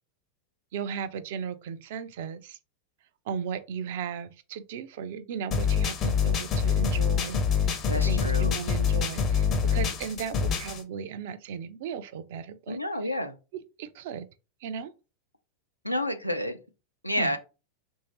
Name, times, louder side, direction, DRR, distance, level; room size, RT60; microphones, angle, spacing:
voice 1, 0.7-2.6 3.3-12.8 13.8-14.3 14.6-14.9 17.2-17.3, right 7 dB, 50° right, 0.4 m, -36 dB
sound 1, 5.5-10.8, left 6 dB, 30° left, 0.6 m, -25 dB
voice 2, 7.8-8.6 12.7-13.3 15.8-16.6 17.0-17.4, left 1 dB, 90° left, 0.5 m, -29 dB
3.1 x 2.7 x 2.9 m
figure-of-eight pair, 90°, 0 cm